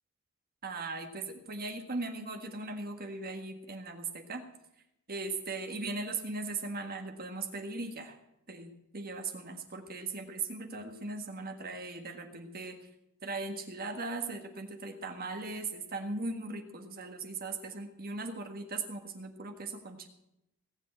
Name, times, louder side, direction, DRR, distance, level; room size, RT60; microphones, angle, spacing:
voice 1, 0.6-4.4 5.1-8.2 8.5-12.8 13.2-20.1, right 3 dB, 40° right, 5 dB, 1.7 m, -38 dB
18.5 x 7.6 x 7.8 m, 0.84 s
head